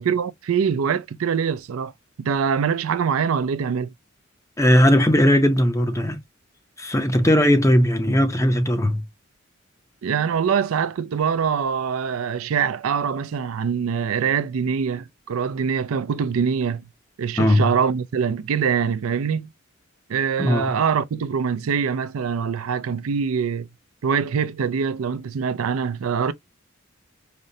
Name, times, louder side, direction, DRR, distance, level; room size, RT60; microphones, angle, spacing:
voice 1, 0.0-1.9 2.2-3.9 10.0-16.8 17.2-19.5 20.1-23.7 24.0-26.3, right 6 dB, 90° right, 0.4 m, -24 dB
voice 2, 4.6-6.2 6.8-9.0 17.4-17.7 20.4-20.7, equal, 15° left, 0.5 m, -18 dB
5.1 x 2.1 x 2.6 m
head